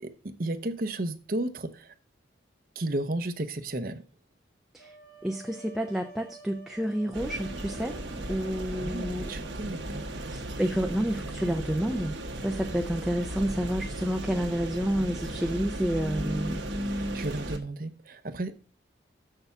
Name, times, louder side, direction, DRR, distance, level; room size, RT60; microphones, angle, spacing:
voice 1, 0.0-1.9 2.8-4.0 8.8-10.1 16.9-18.5, right 1 dB, 50° right, 9 dB, 0.8 m, -33 dB
sound 1, 4.8-10.7, right 3 dB, 50° left, 1.7 m, -51 dB
voice 2, 5.2-8.0 8.3-9.3 10.2-16.6, equal, 5° right, 3 dB, 0.5 m, -29 dB
sound 2, 7.1-17.6, right 1 dB, 85° right, 1.6 m, -35 dB
6.9 x 6.7 x 7.0 m, 0.39 s
head